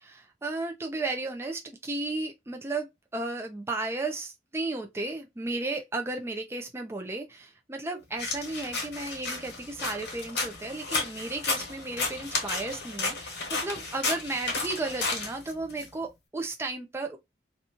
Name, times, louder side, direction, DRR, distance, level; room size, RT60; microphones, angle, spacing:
voice 1, 0.0-2.9 3.1-17.2, right 2 dB, 15° right, 0.4 m, -34 dB
sound 1, 8.2-15.9, left 3 dB, 75° left, 1.0 m, -33 dB
2.7 x 2.3 x 2.8 m
head